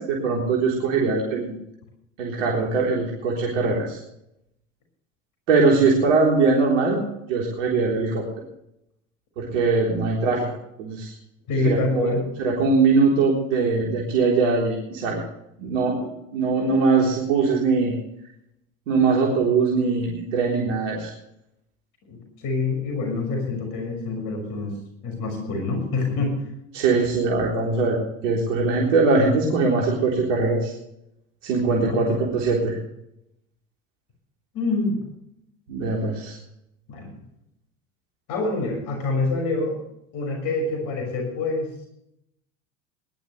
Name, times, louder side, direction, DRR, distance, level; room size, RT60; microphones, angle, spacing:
voice 1, 0.0-1.5 2.2-4.0 5.5-8.3 9.4-10.4 10.8-11.1 11.6-12.1 12.4-15.2 15.6-17.9 18.9-21.1 26.7-28.0 28.2-30.7 31.4-32.8 35.7-36.4, right 4 dB, 75° right, -3 dB, 3.8 m, -21 dB
voice 2, 11.5-12.3 22.0-24.8 25.0-26.3 31.8-32.0 34.5-35.0 36.9-37.1 38.3-39.8 40.1-41.7, left 3 dB, 55° left, 2 dB, 6.0 m, -26 dB
20.5 x 12.0 x 3.3 m, 0.78 s
hypercardioid pair, 80°, 38 cm